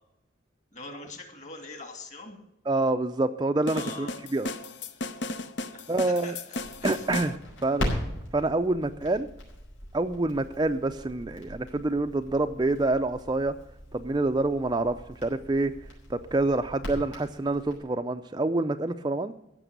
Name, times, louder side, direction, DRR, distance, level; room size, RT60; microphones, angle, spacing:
voice 1, 0.7-2.4 3.7-4.2 5.7-5.9 6.2-7.0, left 2 dB, 40° left, 5 dB, 2.5 m, -43 dB
voice 2, 2.7-4.5 5.9-6.4 6.8-7.4 7.6-7.9 8.3-9.3 9.9-13.5 13.9-15.0 15.2-15.7 16.1-19.3, right 2 dB, 20° right, 8 dB, 0.4 m, -27 dB
sound 1, 3.7-7.4, left 2 dB, 60° left, 0.8 m, -35 dB
Crackle, 6.6-17.8, equal, 80° left, 5.5 m, -39 dB
15.0 x 6.1 x 8.0 m, 0.86 s
head